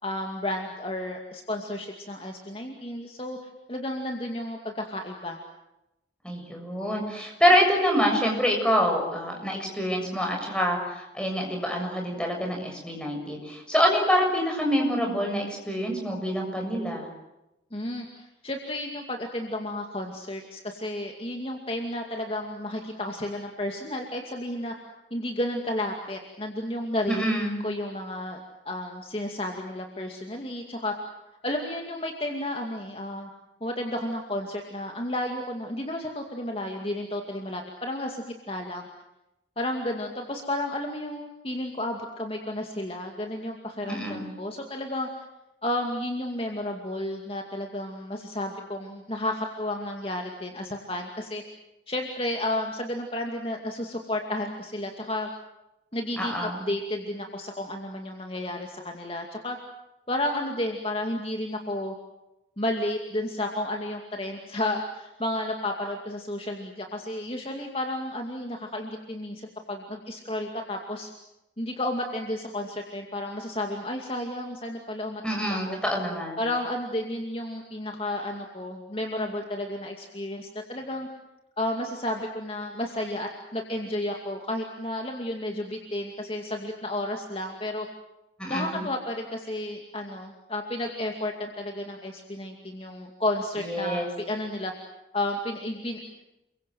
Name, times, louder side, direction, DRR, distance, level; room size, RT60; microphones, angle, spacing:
voice 1, 0.0-3.4 3.7-5.4 17.7-24.7 25.1-28.4 28.7-30.9 31.4-33.3 33.6-38.9 39.6-45.3 45.6-51.4 51.9-55.3 55.9-59.6 60.1-61.9 62.6-71.1 71.6-75.8 76.4-81.1 81.6-87.9 88.5-94.7 95.1-96.0, left 1 dB, 30° left, 2 dB, 2.4 m, -32 dB
voice 2, 6.2-17.1 27.1-27.6 43.8-44.3 56.2-56.6 75.2-76.4 88.4-88.8 93.6-94.1, equal, 5° left, 1 dB, 7.1 m, -26 dB
29.0 x 23.5 x 7.8 m, 0.92 s
head